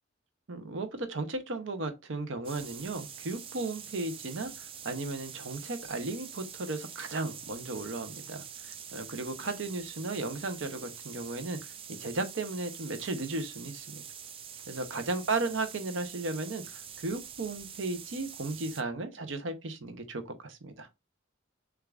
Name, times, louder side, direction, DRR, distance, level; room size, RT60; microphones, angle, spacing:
voice 1, 0.5-14.0 14.7-20.9, right 3 dB, 70° right, 0.7 m, -35 dB
sound 1, 2.4-18.8, right 8 dB, 30° right, 0.3 m, -45 dB
6.4 x 2.4 x 2.4 m
head